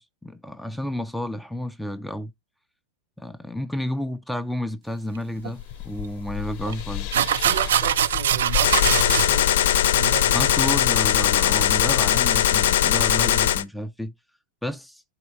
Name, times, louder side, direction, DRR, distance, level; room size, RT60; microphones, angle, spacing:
voice 1, 0.0-2.3 3.2-7.1 10.3-14.1 14.6-15.0, left 1 dB, ahead, 0.4 m, -31 dB
sound 1, 5.1-10.5, left 12 dB, 40° left, 0.7 m, -33 dB
sound 2, 5.4-5.5 6.7-6.8 7.1-9.3, right 10 dB, 90° right, 0.4 m, -22 dB
voice 2, 7.4-10.4, right 9 dB, 60° right, 0.8 m, -34 dB
Gunshot gunfire, 8.6-13.6, left 10 dB, 75° left, 0.6 m, -20 dB
11.0 x 4.3 x 2.8 m
supercardioid pair, 160°, 0 cm